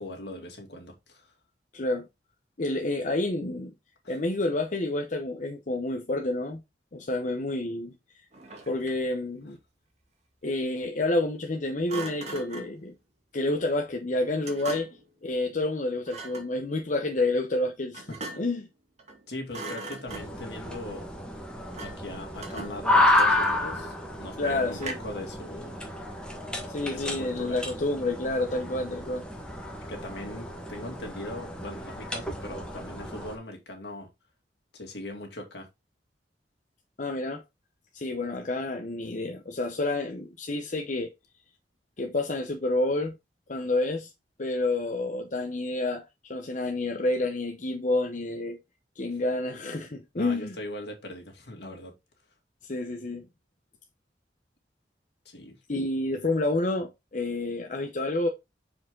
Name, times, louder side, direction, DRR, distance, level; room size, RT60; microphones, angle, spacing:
voice 1, 0.0-1.3 4.0-4.2 18.1-18.2 19.3-21.1 21.8-25.8 26.9-27.6 28.7-28.8 29.9-34.1 34.7-35.7 50.1-51.9 55.2-55.6, left 1 dB, 65° left, 2.4 m, -40 dB
voice 2, 1.7-2.1 2.6-3.7 4.1-6.6 6.9-7.9 8.7-9.6 10.4-12.9 13.3-14.9 15.2-18.1 18.4-18.7 24.4-24.9 26.7-29.2 37.0-37.4 37.9-41.1 42.0-43.2 43.5-44.1 44.4-46.0 46.3-48.6 49.0-50.6 52.6-53.2 55.7-58.3, left 2 dB, 45° left, 0.8 m, -29 dB
Thump thud, 8.3-9.1 11.9-12.8 14.4-15.1 16.1-16.5 17.9-18.6 19.0-19.2 19.5-20.5 21.7-22.1 22.4-23.8 24.8-25.2, right 2 dB, 40° right, 1.9 m, -40 dB
sound 1, 20.1-33.4, left 1 dB, 5° left, 1.5 m, -30 dB
6.4 x 5.0 x 3.8 m
head